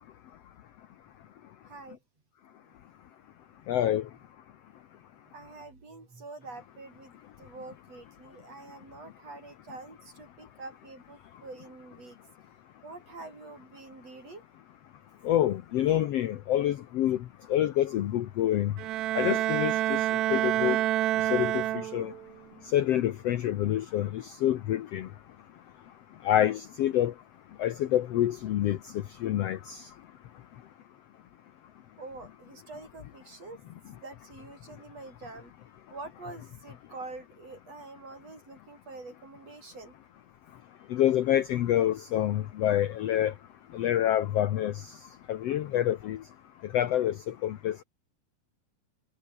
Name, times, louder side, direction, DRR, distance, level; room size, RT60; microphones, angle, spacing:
voice 1, 1.6-2.0 5.3-7.1 7.4-12.2 12.8-14.4 32.0-33.6 34.0-35.5 35.9-39.9, right 3 dB, 45° right, 8.3 m, -46 dB
voice 2, 3.7-4.0 15.2-17.2 17.5-18.7 19.1-20.0 20.3-20.8 21.3-22.1 22.7-25.1 26.2-27.1 27.6-28.8 29.2-29.8 40.9-43.3 43.7-44.7 45.3-46.2 46.7-47.1 47.4-47.8, left 12 dB, 75° left, 1.4 m, -27 dB
Bowed string instrument, 18.8-22.3, right 14 dB, 65° right, 2.0 m, -28 dB
omnidirectional pair, 4.1 m